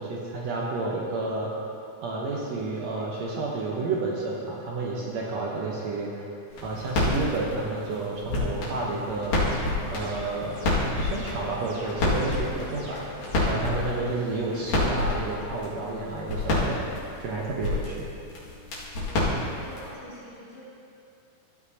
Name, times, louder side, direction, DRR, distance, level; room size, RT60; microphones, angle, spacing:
voice 1, 0.0-1.5 2.0-6.3 6.6-9.3 9.9-10.6 11.0-13.1 13.4-18.1, right 3 dB, 65° right, -4 dB, 1.9 m, -31 dB
sound 1, 6.5-19.9, left 2 dB, 85° left, 3.6 m, -29 dB
sound 2, 9.3-13.7, equal, 25° right, 0.9 m, -42 dB
voice 2, 19.1-20.6, equal, 60° left, -9 dB, 3.9 m, -45 dB
14.5 x 9.5 x 2.8 m, 2.6 s
omnidirectional pair, 3.7 m